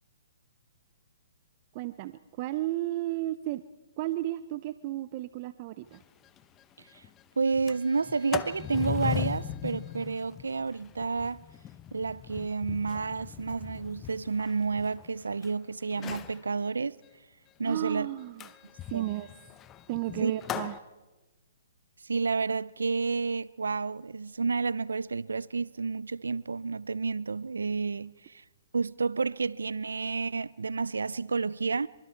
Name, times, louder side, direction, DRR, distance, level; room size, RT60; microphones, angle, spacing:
voice 1, 1.7-3.6 4.0-6.0 17.6-18.5 18.9-19.3 19.9-20.8, right 16 dB, 40° right, 0.7 m, -33 dB
Sliding door, 5.9-6.0 6.4-6.5 6.8-7.1 7.5-15.5 15.9-16.4 18.4-20.8, left 11 dB, 20° left, 0.8 m, -39 dB
voice 2, 7.4-11.4 11.9-17.0 17.6-18.1 18.9-19.1 20.2-20.4 22.0-28.4 28.7-31.9, right 4 dB, 85° right, 0.6 m, -30 dB
25.0 x 24.0 x 4.6 m
hypercardioid pair, 140°, 0 cm